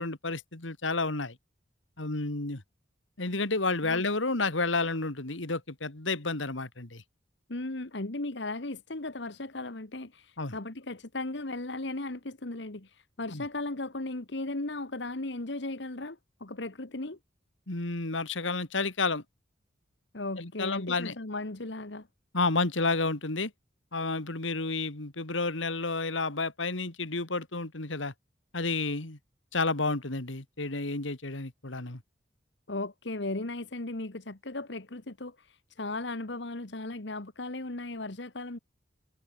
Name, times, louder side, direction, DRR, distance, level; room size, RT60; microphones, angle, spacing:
voice 1, 0.0-1.4 2.0-2.6 3.2-7.0 10.4-10.6 13.3-13.4 17.7-19.2 20.4-21.1 22.3-23.5 23.9-28.1 28.5-29.2 29.5-32.0, left 3 dB, 85° left, 2.5 m, -30 dB
voice 2, 7.5-17.2 20.1-22.1 32.7-38.6, left 2 dB, 70° left, 1.6 m, -36 dB
head